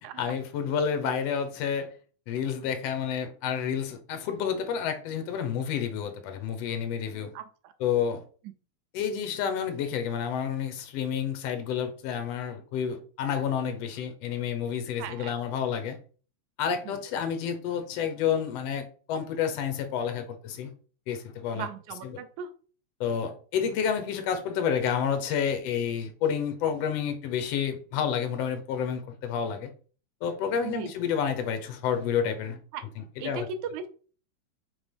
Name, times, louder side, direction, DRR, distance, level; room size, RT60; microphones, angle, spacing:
voice 1, 0.2-1.9 2.3-7.3 7.8-8.2 8.9-16.0 16.6-20.7 21.1-21.7 22.0-22.2 23.0-29.7 30.2-32.6 33.0-33.5, left 7 dB, 65° left, 1.9 m, -29 dB
voice 2, 7.3-7.7 15.0-15.3 16.9-17.0 21.5-22.5 30.6-30.9 32.7-32.8 33.2-33.9, right 6 dB, 85° right, 2.2 m, -37 dB
5.3 x 4.0 x 5.2 m
omnidirectional pair, 3.4 m